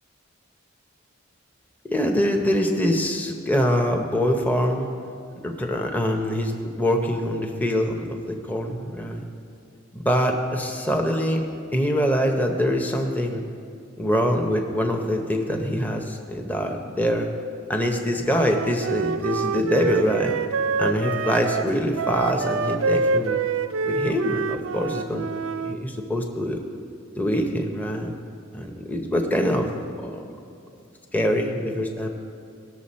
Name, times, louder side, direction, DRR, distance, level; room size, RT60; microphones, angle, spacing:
voice 1, 1.9-4.9 5.4-9.2 9.9-11.5 11.7-13.4 14.0-17.3 17.7-20.4 20.8-23.4 23.9-25.3 25.7-26.6 27.2-28.1 28.5-29.7 30.0-30.2 31.1-32.1, equal, 10° left, 2 dB, 0.7 m, -24 dB
Wind instrument woodwind instrument, 18.3-25.8, right 4 dB, 70° right, 0.4 m, -26 dB
18.5 x 6.7 x 4.2 m, 2.5 s
head